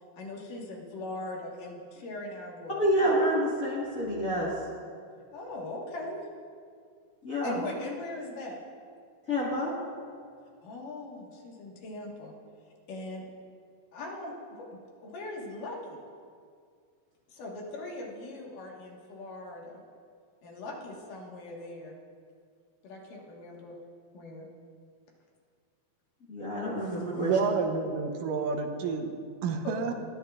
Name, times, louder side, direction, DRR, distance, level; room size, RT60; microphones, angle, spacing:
voice 1, 0.1-2.8 5.3-6.2 7.4-8.6 10.6-12.3 12.9-13.2 13.9-14.7 15.0-16.0 17.3-19.8 20.4-21.9 22.8-23.7 24.1-24.5 29.6-29.9, left 2 dB, 80° left, -2 dB, 3.1 m, -40 dB
voice 2, 2.8-4.5 7.2-7.6 9.3-9.7 26.3-27.3, equal, 45° left, -5 dB, 1.1 m, -28 dB
voice 3, 27.2-29.1 29.4-29.9, right 5 dB, 85° right, 5 dB, 2.4 m, -29 dB
19.5 x 10.0 x 2.4 m, 2.1 s
omnidirectional pair, 3.7 m